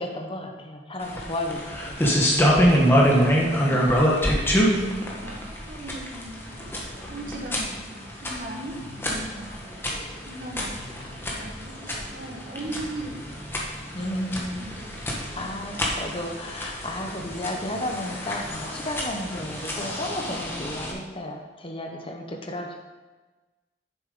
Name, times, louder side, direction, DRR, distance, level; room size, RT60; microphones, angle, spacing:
voice 1, 0.0-2.2 4.7-5.2 13.9-14.7 15.3-22.8, left 1 dB, 30° left, 2 dB, 0.9 m, -33 dB
sound 1, 1.0-20.9, equal, 10° left, 1.3 m, -26 dB
voice 2, 3.2-6.5 6.9-14.0 14.3-16.6, right 1 dB, 50° right, -2 dB, 1.4 m, -40 dB
sound 2, 4.5-8.2 8.5-14.0 14.3-16.1, equal, 35° right, 1.8 m, -46 dB
9.1 x 7.2 x 3.8 m, 1.3 s
head